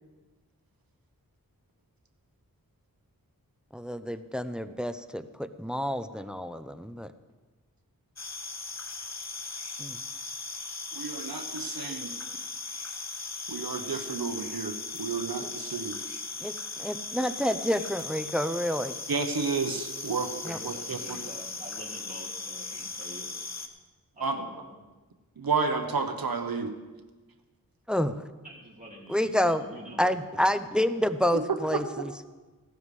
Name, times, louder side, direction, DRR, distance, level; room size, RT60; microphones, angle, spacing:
voice 1, 3.7-7.1 9.8-10.0 16.4-19.0 20.4-20.6 27.9-28.2 29.1-29.6 30.0-32.2, equal, ahead, 11 dB, 0.7 m, -29 dB
sound 1, 8.2-23.7, left 3 dB, 45° left, 1.2 m, -38 dB
voice 2, 10.9-12.1 13.5-16.0 19.1-21.2 24.2-24.4 25.4-26.7 31.3-31.4 31.7-31.8, right 4 dB, 70° right, 6 dB, 1.0 m, -31 dB
voice 3, 20.4-23.3 24.2-24.8 28.4-30.0, equal, 20° right, -4 dB, 3.7 m, -46 dB
17.0 x 13.0 x 3.3 m, 1.3 s
wide cardioid pair, 45°, 36 cm